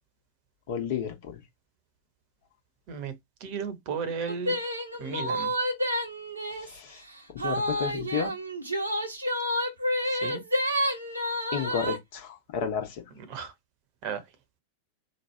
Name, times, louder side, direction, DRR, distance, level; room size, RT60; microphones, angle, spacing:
voice 1, 0.7-1.4 6.6-7.0 7.3-8.3 11.5-13.0, left 7 dB, 50° left, 1.1 m, -32 dB
voice 2, 3.4-4.6 5.0-5.5 10.1-10.4 13.3-13.5 14.0-14.2, right 6 dB, 45° right, 1.0 m, -34 dB
sound 1, 4.3-6.8 7.4-12.0, equal, 80° right, 1.1 m, -29 dB
3.2 x 2.3 x 4.3 m
figure-of-eight pair, 90°, 0 cm